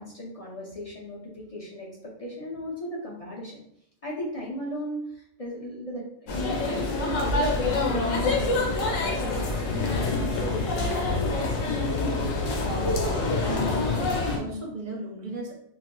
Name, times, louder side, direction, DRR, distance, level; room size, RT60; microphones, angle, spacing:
voice 1, 0.0-1.9 2.2-3.6 4.0-11.8, equal, 45° left, -5 dB, 0.4 m, -36 dB
sound 1, 6.3-14.4, left 3 dB, 85° left, 1.0 m, -26 dB
voice 2, 12.7-13.1 13.4-15.5, equal, 50° right, -1 dB, 0.7 m, -35 dB
4.0 x 2.5 x 2.2 m, 0.72 s
omnidirectional pair, 1.3 m